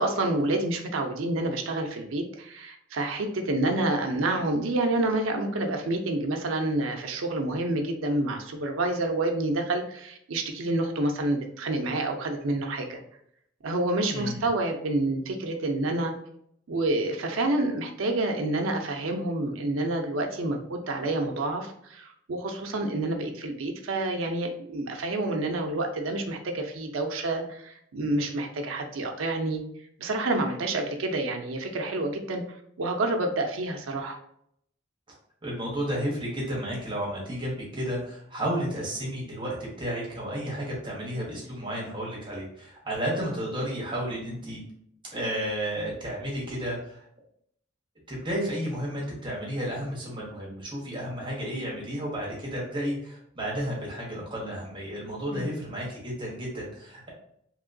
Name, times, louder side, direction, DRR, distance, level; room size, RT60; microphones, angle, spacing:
voice 1, 0.0-13.0 13.6-16.1 16.7-29.6 30.0-34.2 55.3-55.5, right 2 dB, 90° right, 4 dB, 0.5 m, -28 dB
voice 2, 14.1-14.4 35.4-44.6 45.1-47.0 48.1-57.1, equal, 25° right, -4 dB, 1.0 m, -32 dB
3.0 x 2.8 x 2.5 m, 0.71 s
head